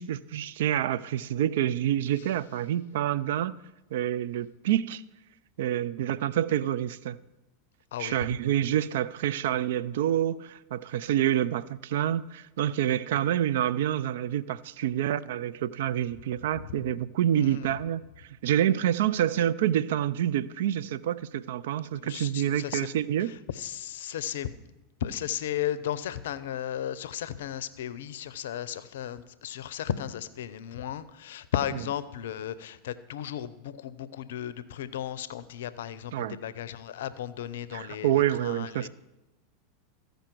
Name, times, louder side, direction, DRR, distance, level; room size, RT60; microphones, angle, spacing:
voice 1, 0.0-3.6 3.9-5.0 5.6-7.2 8.0-23.3 36.1-36.4 37.7-38.9, right 11 dB, 70° right, 0.3 m, -27 dB
voice 2, 17.4-17.8 21.9-22.9 23.2-24.7 25.0-38.9, left 10 dB, 75° left, 0.5 m, -35 dB
14.0 x 5.2 x 4.5 m
hypercardioid pair, 95°, 0 cm